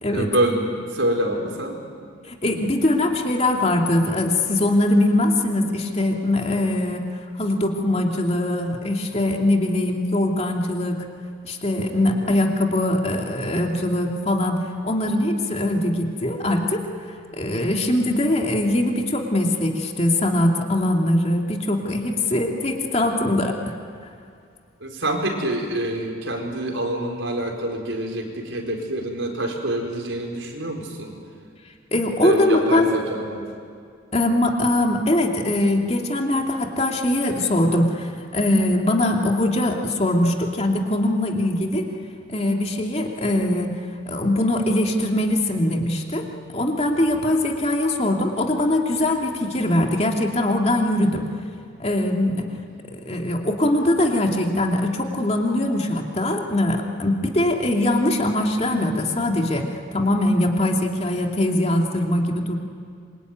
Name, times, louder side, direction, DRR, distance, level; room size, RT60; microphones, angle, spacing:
voice 1, 0.1-1.8 6.7-6.8 12.0-12.3 21.8-21.9 24.8-31.2 32.2-33.5 52.3-52.5 57.5-57.6, right 1 dB, 75° right, 2 dB, 4.6 m, -26 dB
voice 2, 2.3-7.0 7.4-11.0 11.4-14.6 14.8-16.8 17.3-23.7 31.9-32.9 34.1-41.9 42.3-43.7 44.0-46.3 46.5-51.3 51.8-52.5 53.0-59.7 59.9-62.6, left 1 dB, 30° left, 1 dB, 2.6 m, -22 dB
26.5 x 24.0 x 9.4 m, 2.3 s
head